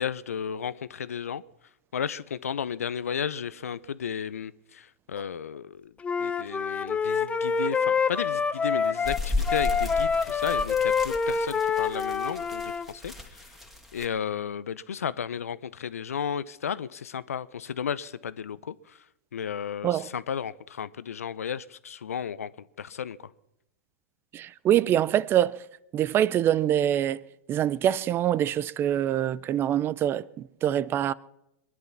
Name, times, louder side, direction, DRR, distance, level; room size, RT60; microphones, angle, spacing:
voice 1, 0.0-1.4 1.9-5.9 6.2-13.1 13.9-18.7 19.3-22.5 22.8-23.2, left 8 dB, 85° left, 0.7 m, -33 dB
Wind instrument woodwind instrument, 6.0-12.9, left 5 dB, 15° left, 0.8 m, -26 dB
sound 1, 9.0-14.1, left 3 dB, ahead, 2.7 m, -35 dB
voice 2, 24.3-25.6 25.9-27.2 27.5-30.2 30.6-31.1, right 11 dB, 30° right, 0.6 m, -24 dB
22.0 x 11.0 x 6.0 m
hypercardioid pair, 110°, 8 cm